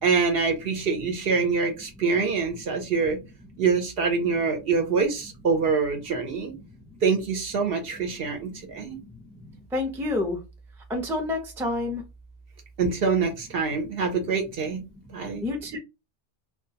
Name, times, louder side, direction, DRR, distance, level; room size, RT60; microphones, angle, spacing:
voice 1, 0.0-3.2 3.6-6.5 7.0-9.0 12.8-14.8 15.1-15.4, right 5 dB, 65° right, 4 dB, 0.7 m, -25 dB
voice 2, 8.7-10.4 10.9-12.0 15.0-15.8, left 2 dB, 5° right, 3 dB, 0.3 m, -30 dB
2.3 x 2.2 x 2.7 m, 0.25 s
omnidirectional pair, 1.2 m